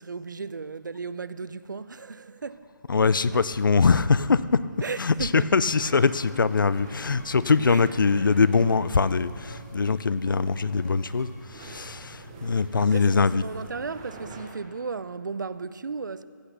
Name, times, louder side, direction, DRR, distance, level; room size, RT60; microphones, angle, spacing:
voice 1, 0.0-2.7 3.3-3.4 4.8-5.5 7.7-7.9 12.8-16.2, right 4 dB, 65° right, 0.5 m, -35 dB
voice 2, 2.9-4.6 5.0-13.5, left 4 dB, 80° left, 0.5 m, -22 dB
sound 1, 5.6-14.4, right 3 dB, 10° right, 0.6 m, -44 dB
sound 2, 6.3-11.6, left 2 dB, 50° left, 2.0 m, -50 dB
15.0 x 8.1 x 6.8 m
hypercardioid pair, 180°, 11 cm